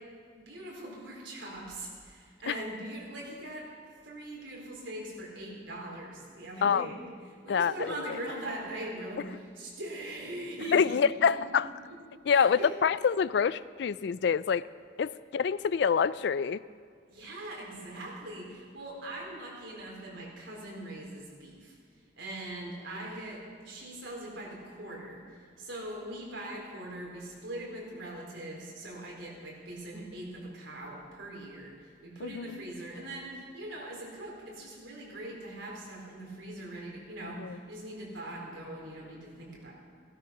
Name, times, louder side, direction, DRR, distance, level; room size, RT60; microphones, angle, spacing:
voice 1, 0.3-3.7 4.0-7.0 7.4-10.9 11.3-11.5 12.1-12.7 17.1-21.8 22.2-25.2 25.6-31.7 32.0-39.7, right 1 dB, 75° right, -3 dB, 4.2 m, -41 dB
voice 2, 10.7-11.7 12.3-14.6 15.0-16.6 32.2-32.6 37.2-37.6, left 6 dB, 60° left, 16 dB, 0.3 m, -26 dB
15.5 x 12.5 x 5.9 m, 2.1 s
head